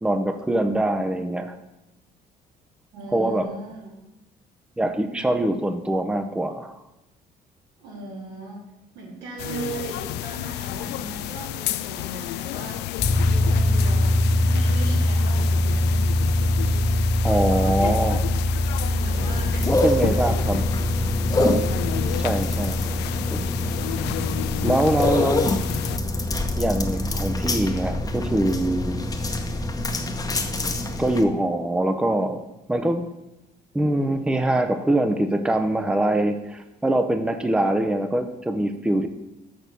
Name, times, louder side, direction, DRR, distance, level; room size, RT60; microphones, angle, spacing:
voice 1, 0.0-1.5 3.1-3.5 4.8-6.7 17.2-18.3 19.7-20.6 22.2-22.8 23.3-23.4 24.6-25.6 26.6-29.0 31.0-33.1 33.7-39.1, right 1 dB, 5° right, 7 dB, 0.6 m, -23 dB
voice 2, 2.9-4.0 7.8-8.6 8.9-12.8 13.3-16.0 18.8-20.6, right 3 dB, 90° right, -4 dB, 3.5 m, -38 dB
sound 1, 9.4-26.0, left 13 dB, 85° left, 0.4 m, -31 dB
sound 2, 13.0-29.7, left 1 dB, 50° left, 1.3 m, -24 dB
sound 3, 19.1-31.2, left 2 dB, 20° left, 0.9 m, -27 dB
6.5 x 5.8 x 6.8 m, 0.97 s
cardioid pair, 110°, 17 cm